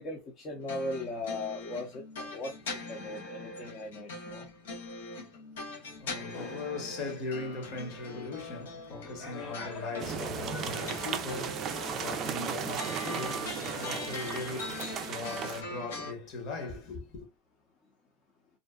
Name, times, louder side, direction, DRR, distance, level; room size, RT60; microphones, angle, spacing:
voice 1, 0.0-2.1 2.3-2.5 2.9-4.5, left 2 dB, 35° left, 0.7 m, -38 dB
sound 1, 0.6-16.1, left 3 dB, 85° left, 0.8 m, -42 dB
voice 2, 6.0-17.3, left 3 dB, 50° left, 1.1 m, -39 dB
sound 2, 10.0-15.6, right 8 dB, 40° right, 0.4 m, -36 dB
2.6 x 2.2 x 2.2 m
supercardioid pair, 120°, 0 cm